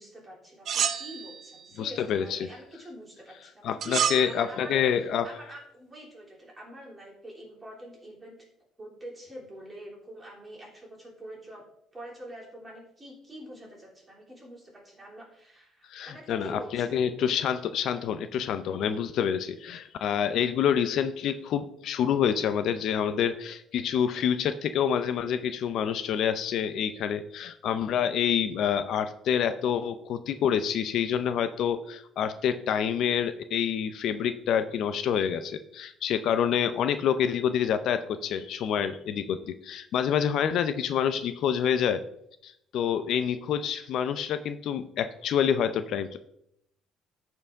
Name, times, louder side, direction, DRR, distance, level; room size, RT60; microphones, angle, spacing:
voice 1, 0.0-4.8 5.2-8.4 8.8-11.6 11.9-17.0, right 1 dB, 15° right, -4 dB, 3.2 m, -45 dB
sound 1, 0.7-1.7 3.8-4.3, right 8 dB, 45° right, 0.6 m, -29 dB
voice 2, 1.8-2.4 3.6-5.3 15.9-42.0 42.4-46.2, left 8 dB, 60° left, 10 dB, 0.5 m, -27 dB
14.0 x 4.6 x 3.5 m, 0.75 s
cardioid pair, 135°, 0 cm